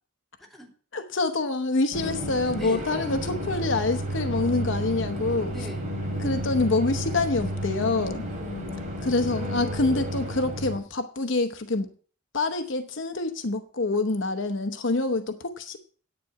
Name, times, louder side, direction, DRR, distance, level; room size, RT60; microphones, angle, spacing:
voice 1, 0.9-5.5 6.2-8.2 9.0-11.9 12.3-15.8, left 3 dB, 60° left, 8 dB, 0.8 m, -26 dB
sound 1, 1.9-10.8, equal, 35° right, 3.3 m, -31 dB
voice 2, 2.5-2.9 5.5-5.8 8.3-9.1, left 1 dB, ahead, -2 dB, 2.8 m, -40 dB
10.0 x 8.9 x 4.8 m, 0.43 s
head